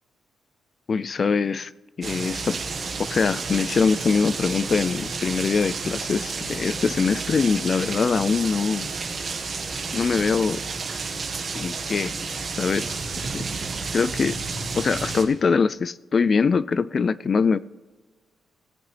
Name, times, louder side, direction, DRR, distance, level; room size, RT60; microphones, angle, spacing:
voice 1, 0.9-1.7 2.0-2.6 3.0-8.9 9.9-10.6 11.5-12.2 12.6-13.0 13.3-13.5 13.9-14.4 14.8-17.6, left 5 dB, 40° left, 0.3 m, -23 dB
sound 1, 2.0-15.2, right 4 dB, 40° right, 1.4 m, -31 dB
17.5 x 9.0 x 3.3 m
cardioid pair, 130°, 0 cm